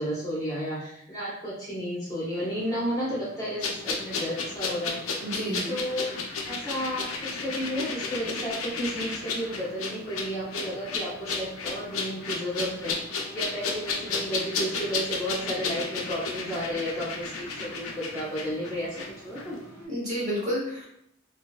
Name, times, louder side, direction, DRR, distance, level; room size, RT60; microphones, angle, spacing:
voice 1, 0.0-5.0 5.7-13.0 13.3-19.0 19.2-19.6, equal, 15° left, -8 dB, 0.6 m, -32 dB
sound 1, 2.3-19.9, right 2 dB, 85° right, 1.2 m, -50 dB
sound 2, 3.6-19.1 19.4-19.5, left 4 dB, 85° left, 0.4 m, -33 dB
voice 2, 5.2-5.7 19.8-20.8, equal, 35° right, -6 dB, 1.0 m, -30 dB
2.5 x 2.2 x 2.3 m, 0.75 s
head